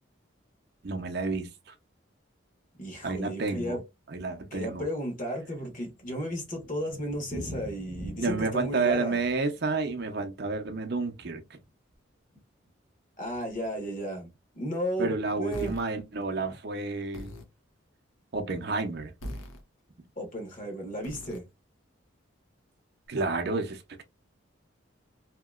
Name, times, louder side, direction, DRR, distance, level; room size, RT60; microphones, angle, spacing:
voice 1, 0.8-1.7 3.0-3.8 4.1-4.8 8.2-11.4 15.0-17.3 18.3-19.1 23.1-23.8, right 3 dB, 50° right, 0.5 m, -30 dB
voice 2, 2.8-3.8 4.5-9.2 13.2-15.8 20.2-21.4, equal, 40° left, 1.1 m, -34 dB
Thunder, 5.8-11.7 11.9-12.0 12.3-12.4 12.7-12.8 13.3-13.7, equal, 5° left, 0.8 m, -44 dB
sound 1, 15.5-15.8 17.1-17.5 19.2-19.6 21.0-21.4, left 1 dB, 80° left, 0.8 m, -40 dB
2.8 x 2.8 x 2.3 m
head